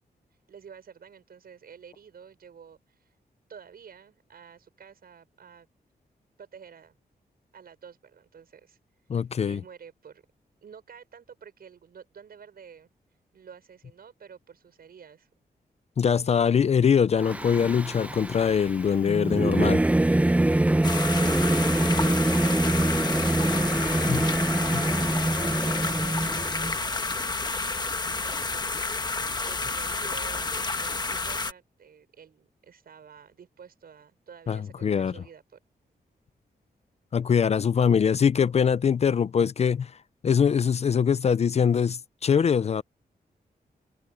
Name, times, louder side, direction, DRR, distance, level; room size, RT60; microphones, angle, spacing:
voice 1, 0.5-3.1 3.5-5.7 6.4-6.9 7.5-8.8 9.1-10.2 10.6-12.9 13.3-15.3 20.5-24.8 25.3-27.4 27.6-28.9 29.2-35.6, right 7 dB, 65° right, 6.3 m, -49 dB
voice 2, 9.1-9.6 16.0-19.8 24.1-24.2 34.5-35.1 37.1-39.9 40.2-42.8, left 7 dB, 40° left, 0.4 m, -23 dB
Singing / Musical instrument, 17.2-26.8, right 1 dB, 10° right, 0.6 m, -25 dB
sound 1, 20.8-31.5, left 3 dB, 25° left, 1.2 m, -30 dB
open air
wide cardioid pair, 170°, 17 cm